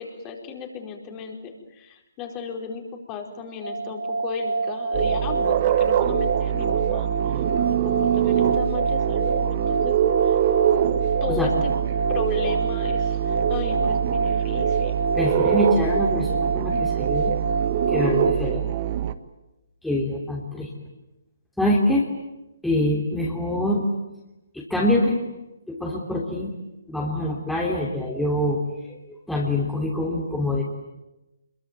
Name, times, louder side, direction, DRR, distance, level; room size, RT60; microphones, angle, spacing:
voice 1, 0.0-10.4 11.2-11.7 12.1-15.0, left 6 dB, 25° left, 3 dB, 4.7 m, -35 dB
sound 1, 3.6-18.3, right 3 dB, 90° right, 2.4 m, -27 dB
sound 2, 4.9-19.1, right 11 dB, 35° right, 1.5 m, -24 dB
voice 2, 15.2-17.3 17.9-18.6 19.8-20.7 21.6-22.1 22.6-23.9 24.5-25.2 25.7-26.5 26.9-28.6 28.8-30.6, left 1 dB, ahead, -4 dB, 3.3 m, -25 dB
27.5 x 23.0 x 9.4 m, 0.99 s
figure-of-eight pair, 135°, 0 cm